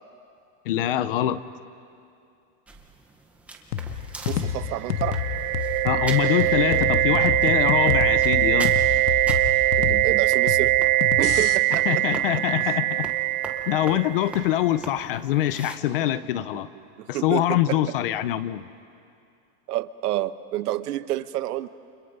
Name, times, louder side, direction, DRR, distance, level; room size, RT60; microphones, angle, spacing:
voice 1, 0.7-1.4 5.8-8.7 11.9-13.1 13.7-16.7 17.1-18.7, left 13 dB, 40° left, 15 dB, 0.5 m, -24 dB
sound 1, 2.7-15.8, right 2 dB, 5° right, 0.6 m, -42 dB
sound 2, 3.7-11.6, left 10 dB, 85° left, 1.5 m, -29 dB
voice 2, 4.3-5.2 9.8-10.8 11.2-12.0 13.9-14.0 16.0-16.1 17.0-17.8 19.7-21.7, right 15 dB, 85° right, 14 dB, 1.0 m, -29 dB
sound 3, 4.7-14.5, right 17 dB, 55° right, 0.8 m, -22 dB
29.5 x 27.5 x 5.4 m, 2.5 s
supercardioid pair, 175°, 46 cm